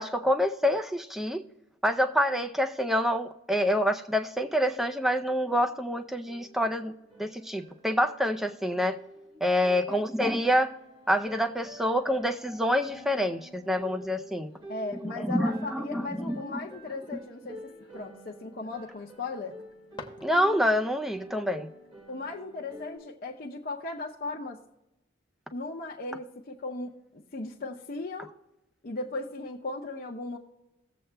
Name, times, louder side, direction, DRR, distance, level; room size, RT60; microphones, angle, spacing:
voice 1, 0.0-1.4 1.8-6.9 7.2-9.0 9.4-10.7 11.1-14.5 15.2-16.6 16.9-17.2 20.2-21.7, equal, ahead, 6 dB, 0.4 m, -27 dB
sound 1, 5.4-23.0, equal, 25° right, 1.3 m, -48 dB
voice 2, 14.7-19.6 22.1-24.6 25.5-27.0 27.3-28.3 28.8-30.4, left 3 dB, 45° left, -2 dB, 0.7 m, -37 dB
sound 2, 19.6-20.9, left 3 dB, 25° left, 0.9 m, -47 dB
17.5 x 7.6 x 2.2 m, 0.94 s
head